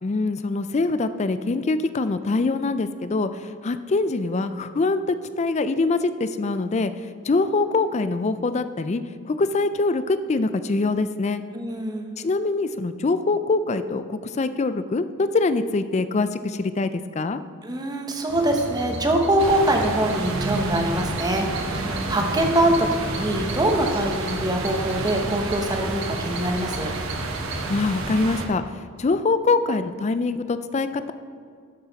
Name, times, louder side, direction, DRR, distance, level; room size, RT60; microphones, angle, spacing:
voice 1, 0.0-6.9 7.2-9.0 9.3-11.4 12.2-17.4 27.7-31.1, left 3 dB, 30° left, 12 dB, 0.4 m, -24 dB
voice 2, 11.5-12.1 17.6-26.9, right 1 dB, 20° right, 3 dB, 1.0 m, -23 dB
sound 1, 18.3-27.7, right 1 dB, 60° right, 1.5 m, -36 dB
sound 2, 19.4-28.5, right 2 dB, 75° right, 1.1 m, -30 dB
12.5 x 6.5 x 4.1 m, 2.1 s
head